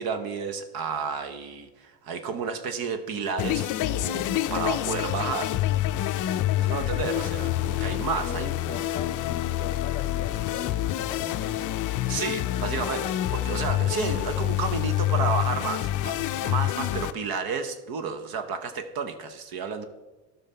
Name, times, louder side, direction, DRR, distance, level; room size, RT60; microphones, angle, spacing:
voice 1, 0.0-5.5 6.6-8.5 12.1-19.8, right 5 dB, 50° right, 9 dB, 1.1 m, -31 dB
sound 1, 3.4-17.1, left 13 dB, 45° left, 0.5 m, -27 dB
voice 2, 6.9-7.2 8.1-11.9, left 3 dB, 15° left, 9 dB, 1.2 m, -40 dB
12.0 x 5.8 x 4.3 m, 1.1 s
hypercardioid pair, 80°, 46 cm